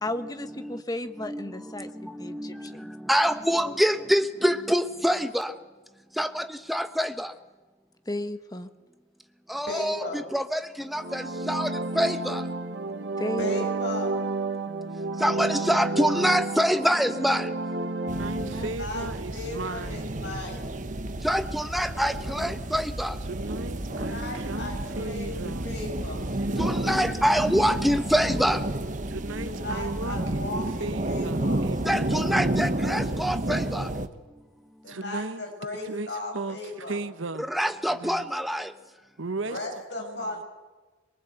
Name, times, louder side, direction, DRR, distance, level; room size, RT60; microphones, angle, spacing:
voice 1, 0.0-2.9 8.1-8.7 13.2-13.5 18.3-18.7, left 1 dB, 20° left, 1.3 m, -34 dB
voice 2, 3.1-5.5 6.2-6.4 6.7-7.3 9.5-10.6 10.9-11.2 11.5-11.7 12.0-12.3 15.2-17.4 21.2-23.1 26.6-28.6 31.9-33.8 37.5-38.6, equal, ahead, 1.1 m, -25 dB
voice 3, 9.7-10.2 13.4-14.1 18.6-20.7 23.9-26.2 29.4-31.6 34.8-37.0 39.4-40.4, left 2 dB, 60° left, 7.4 m, -36 dB
sound 1, 10.8-18.7, right 3 dB, 65° right, 1.7 m, -31 dB
sound 2, 18.1-34.1, right 1 dB, 40° right, 1.2 m, -31 dB
voice 4, 18.2-20.2 23.2-26.9 29.1-32.4 34.9-37.5 37.9-38.3 39.2-39.6 40.0-40.4, right 3 dB, 80° right, 1.1 m, -37 dB
23.0 x 22.5 x 8.1 m
head